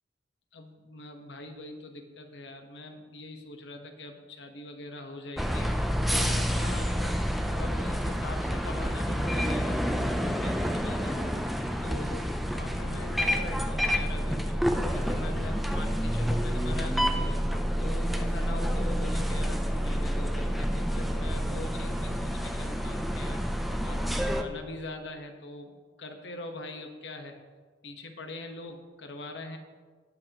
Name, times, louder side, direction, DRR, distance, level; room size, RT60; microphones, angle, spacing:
voice 1, 0.5-11.4 11.8-14.5 14.9-17.4 17.8-23.4 23.8-27.4 27.8-29.6, left 2 dB, 80° left, 5 dB, 1.1 m, -42 dB
sound 1, 5.4-24.4, equal, ahead, 0.5 m, -28 dB
19.5 x 6.7 x 3.0 m, 1.5 s
head